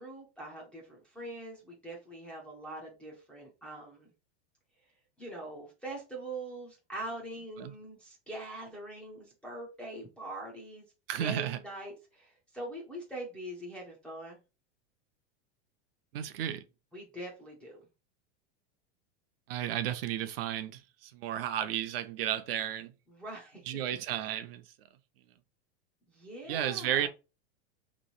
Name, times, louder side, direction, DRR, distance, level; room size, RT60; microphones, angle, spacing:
voice 1, 0.0-4.1 5.2-10.9 11.2-14.4 16.9-17.8 23.1-24.0 26.1-27.1, right 1 dB, 5° left, 0.4 m, -43 dB
voice 2, 11.1-11.6 16.1-16.6 19.5-22.9 23.7-24.6 26.5-27.1, right 11 dB, 55° right, 0.6 m, -33 dB
3.0 x 3.0 x 4.2 m
supercardioid pair, 170°, 34 cm